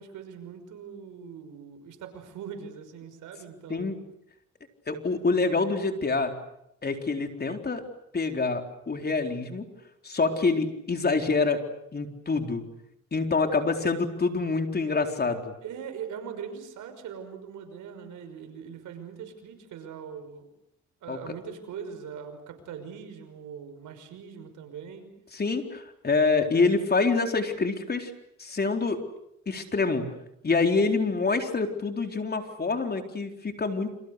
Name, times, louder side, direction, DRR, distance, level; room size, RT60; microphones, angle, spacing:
voice 1, 0.0-3.9 15.6-20.5 21.0-25.1, right 7 dB, 80° right, 7 dB, 5.9 m, -41 dB
voice 2, 4.9-6.3 6.8-7.8 8.1-9.6 10.0-11.6 11.9-12.6 13.1-15.5 21.1-21.2 25.3-28.1 28.4-29.0 29.5-30.1 30.4-33.9, left 4 dB, 30° left, 5 dB, 4.1 m, -26 dB
29.5 x 26.5 x 6.7 m, 0.79 s
cardioid pair, 90°, 30 cm